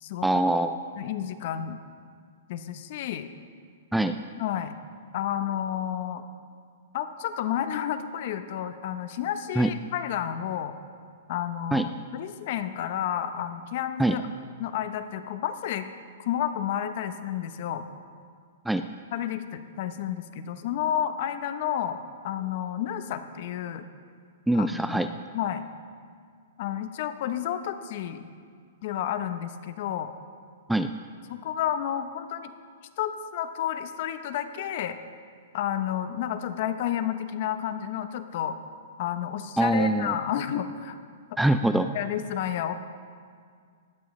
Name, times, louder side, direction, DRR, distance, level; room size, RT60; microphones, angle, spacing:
voice 1, 0.2-0.8 3.9-4.2 9.6-9.7 11.7-11.9 14.0-14.2 18.7-18.8 24.5-25.1 30.7-30.9 39.6-40.1 41.4-41.9, right 1 dB, 5° right, 8 dB, 0.3 m, -23 dB
voice 2, 1.0-1.8 2.5-3.3 4.4-4.7 5.1-6.2 6.9-10.8 11.3-14.3 14.6-15.9 16.2-17.8 19.1-23.9 24.5-25.0 25.3-25.6 26.6-28.2 28.8-30.1 31.3-32.5 33.0-35.0 35.5-38.6 39.0-41.0 41.9-42.7, left 10 dB, 50° left, 10 dB, 0.8 m, -31 dB
18.5 x 12.5 x 3.2 m, 2.1 s
hypercardioid pair, 155°, 0 cm